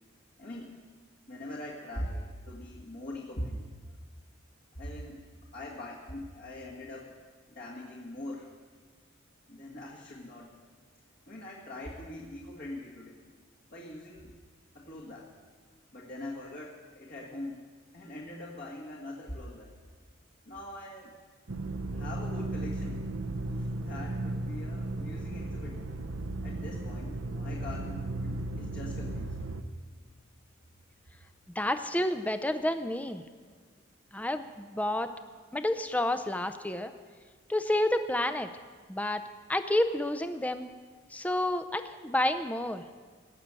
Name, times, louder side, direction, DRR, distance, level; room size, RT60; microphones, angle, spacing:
voice 1, 0.4-0.8 1.3-3.7 4.7-7.2 7.5-8.5 9.5-10.6 11.3-13.2 13.7-14.3 14.7-15.3 15.9-17.6 17.9-19.7 20.4-21.1 21.9-23.1 23.4-25.8 26.4-29.4, left 1 dB, 50° left, -4 dB, 1.7 m, -42 dB
sound 1, 21.5-29.6, right 2 dB, 75° right, 0.8 m, -35 dB
voice 2, 31.6-33.2 34.1-35.1 35.5-36.9 37.5-38.5 38.9-39.2 39.5-40.7 41.1-42.8, left 1 dB, 5° left, 10 dB, 0.5 m, -29 dB
18.5 x 6.8 x 7.5 m, 1.5 s
head